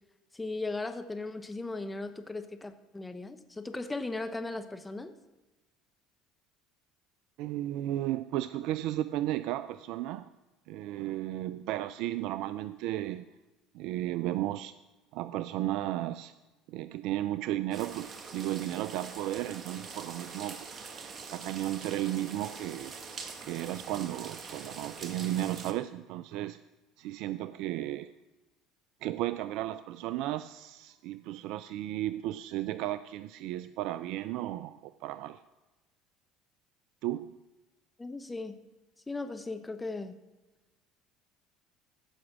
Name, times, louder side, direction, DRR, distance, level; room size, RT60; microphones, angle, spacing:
voice 1, 0.3-5.1 38.0-38.6 39.1-40.2, left 3 dB, 15° left, 9 dB, 0.9 m, -37 dB
voice 2, 7.4-10.3 10.7-13.3 13.7-14.7 15.1-16.3 16.7-20.8 21.3-22.9 23.4-26.6 27.0-28.1 29.0-35.4 37.0-37.3, right 14 dB, 65° right, 14 dB, 0.3 m, -34 dB
sound 1, 17.7-25.7, right 5 dB, 40° right, 1.4 m, -44 dB
15.0 x 6.1 x 6.0 m, 1.1 s
hypercardioid pair, 70°, 0 cm